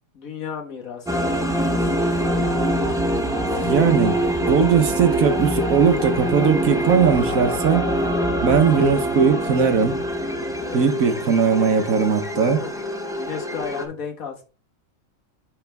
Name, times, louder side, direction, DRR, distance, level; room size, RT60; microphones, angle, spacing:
voice 1, 0.1-2.8 10.5-10.8 12.4-12.8 13.2-14.4, left 6 dB, 85° left, 2.0 m, -34 dB
sound 1, 1.0-13.8, equal, 5° right, 0.9 m, -24 dB
sound 2, 2.2-8.1, right 3 dB, 20° left, 1.7 m, -35 dB
voice 2, 3.2-4.2 4.5-7.9 8.4-10.0 10.7-12.6, right 6 dB, 90° right, 1.5 m, -19 dB
9.9 x 3.5 x 3.4 m
omnidirectional pair, 1.4 m